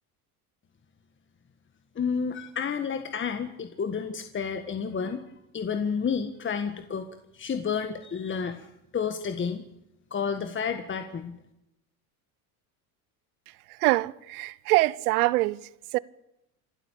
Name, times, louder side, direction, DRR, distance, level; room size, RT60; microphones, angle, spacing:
voice 1, 1.9-5.2 5.5-7.1 7.3-8.7 8.9-9.6 10.1-11.4, left 6 dB, 25° left, 1.6 m, -30 dB
voice 2, 13.8-15.6 15.9-16.0, right 20 dB, 85° right, 0.9 m, -24 dB
27.5 x 12.5 x 8.5 m
supercardioid pair, 105°, 43 cm